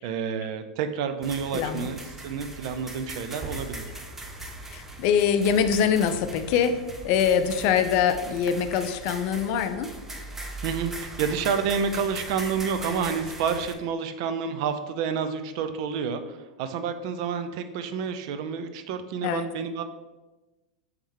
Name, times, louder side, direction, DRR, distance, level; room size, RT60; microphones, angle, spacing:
voice 1, 0.0-3.9 10.6-19.8, right 6 dB, 55° right, 9 dB, 0.4 m, -29 dB
sound 1, 1.2-13.7, right 2 dB, 10° right, 0.6 m, -39 dB
voice 2, 1.5-1.9 4.7-6.8 7.0-9.9 19.2-19.5, left 7 dB, 50° left, 9 dB, 0.4 m, -24 dB
3.5 x 3.2 x 4.6 m, 1.1 s
hypercardioid pair, 95°, 4 cm